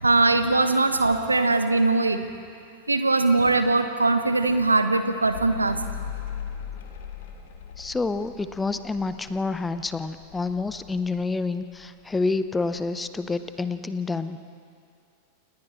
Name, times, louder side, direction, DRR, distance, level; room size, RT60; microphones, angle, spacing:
voice 1, 0.0-2.2 2.9-5.8, right 3 dB, 80° right, 9 dB, 1.2 m, -21 dB
Mechanical fan, 5.3-12.2 12.5-13.3, left 6 dB, 55° left, 2.4 m, -39 dB
voice 2, 7.8-14.4, left 3 dB, 10° left, 11 dB, 0.9 m, -28 dB
30.0 x 29.5 x 3.3 m, 2.3 s
figure-of-eight pair, 90°, 0 cm